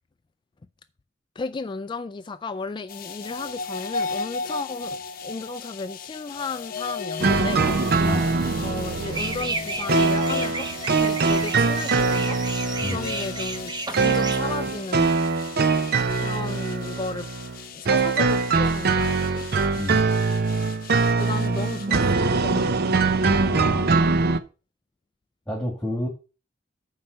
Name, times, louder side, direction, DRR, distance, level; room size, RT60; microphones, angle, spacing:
voice 1, 1.4-7.7 8.6-12.4 12.8-15.2 16.1-17.3 17.7-19.4 21.2-22.9, left 4 dB, 25° left, 0.3 m, -34 dB
sound 1, 2.9-22.0, left 4 dB, 50° left, 0.8 m, -36 dB
sound 2, 7.2-24.4, right 4 dB, 55° right, 0.7 m, -23 dB
voice 2, 8.0-8.4 12.8-13.1 19.8-20.1 23.2-24.0 25.5-26.1, left 1 dB, 5° left, 2.1 m, -30 dB
sound 3, 9.1-14.4, right 3 dB, 25° right, 0.8 m, -33 dB
7.6 x 4.9 x 6.6 m
head